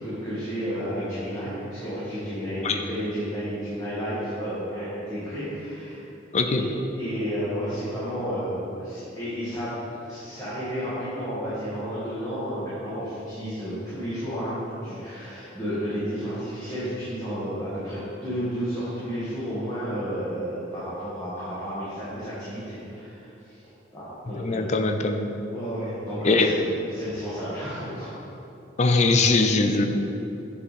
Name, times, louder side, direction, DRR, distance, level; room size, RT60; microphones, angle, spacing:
voice 1, 0.0-6.0 6.5-6.6 6.9-9.8 10.1-23.6 23.9-24.6 25.5-26.5 26.9-28.1, equal, 20° left, -12 dB, 1.7 m, -32 dB
voice 2, 6.3-6.6 24.4-25.3 26.2-26.6 28.8-29.9, left 3 dB, 40° left, 6 dB, 0.5 m, -21 dB
8.2 x 4.9 x 4.2 m, 2.8 s
head